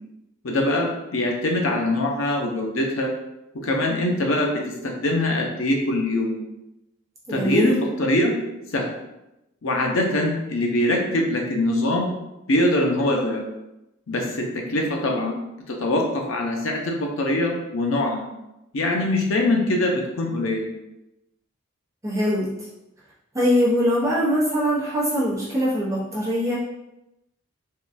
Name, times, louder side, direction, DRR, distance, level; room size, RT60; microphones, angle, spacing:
voice 1, 0.4-3.1 3.6-6.3 7.3-8.3 8.7-8.8 9.6-12.1 12.5-13.4 14.1-15.3 15.7-18.2 18.7-20.7, left 1 dB, 90° left, 1 dB, 0.6 m, -23 dB
voice 2, 7.3-7.7 22.0-22.5 23.3-26.5, equal, 15° right, -7 dB, 0.7 m, -22 dB
3.6 x 2.2 x 2.5 m, 0.91 s
head